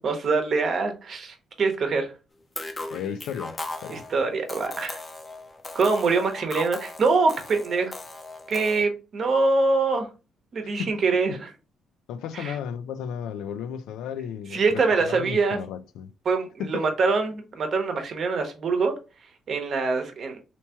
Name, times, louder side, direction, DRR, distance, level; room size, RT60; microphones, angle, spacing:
voice 1, 0.0-2.1 3.9-5.0 5.7-7.9 8.5-10.1 10.5-11.5 12.3-12.6 14.5-15.6 16.2-18.9 19.5-20.4, right 4 dB, 55° right, 0.9 m, -24 dB
sound 1, 2.6-8.8, left 2 dB, 25° left, 0.5 m, -38 dB
voice 2, 2.9-4.1 10.6-11.4 12.1-16.1 16.6-16.9, left 8 dB, 90° left, 0.3 m, -34 dB
3.4 x 2.9 x 2.8 m
cardioid pair, 90°, 0 cm